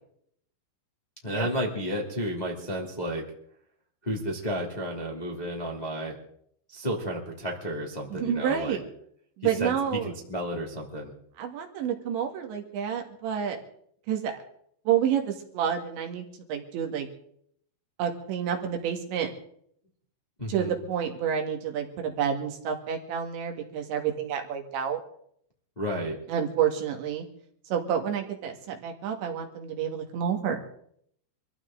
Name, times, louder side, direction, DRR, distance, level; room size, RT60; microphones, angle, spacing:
voice 1, 1.2-3.2 4.0-6.2 6.7-8.8 9.6-9.7 10.0-11.1 20.4-20.7 25.8-26.2, equal, 15° left, -1 dB, 1.7 m, -32 dB
voice 2, 8.1-8.8 9.4-10.1 11.4-13.6 14.1-14.3 14.9-17.1 18.0-19.3 20.5-25.0 26.3-27.3 27.7-30.6, right 8 dB, 80° right, 3 dB, 4.1 m, -29 dB
25.0 x 14.5 x 3.8 m, 0.67 s
omnidirectional pair, 5.2 m